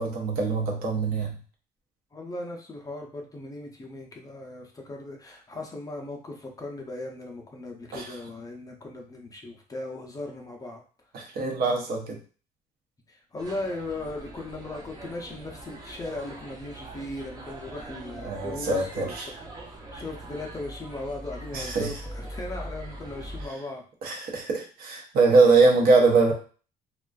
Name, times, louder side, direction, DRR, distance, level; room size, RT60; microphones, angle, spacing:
voice 1, 0.0-1.4 7.9-8.1 11.1-12.2 18.2-19.3 21.5-21.9 24.0-26.3, right 3 dB, 60° right, 1 dB, 0.7 m, -22 dB
voice 2, 2.1-10.8 13.1-19.1 19.6-23.8, left 2 dB, 20° left, 1 dB, 0.5 m, -38 dB
sound 1, 13.4-23.5, right 1 dB, 20° right, 0.6 m, -42 dB
2.4 x 2.3 x 2.3 m, 0.38 s
cardioid pair, 110°, 17 cm